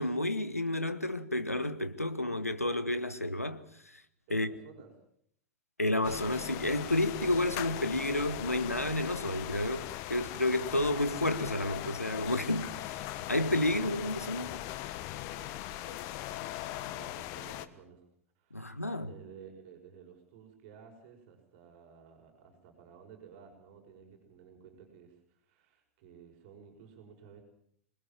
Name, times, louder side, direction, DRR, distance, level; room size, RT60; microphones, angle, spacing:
voice 1, 0.0-4.0 4.3-4.5 5.8-13.0 13.3-14.6 18.5-19.1, left 1 dB, 90° left, 1.6 m, -31 dB
voice 2, 4.3-4.9 13.8-14.6 14.9-18.0 18.4-27.4, right 7 dB, 45° right, 6.1 m, -54 dB
sound 1, 6.0-17.7, left 15 dB, 40° left, 1.4 m, -39 dB
26.0 x 20.5 x 7.5 m
figure-of-eight pair, 95°, 8 cm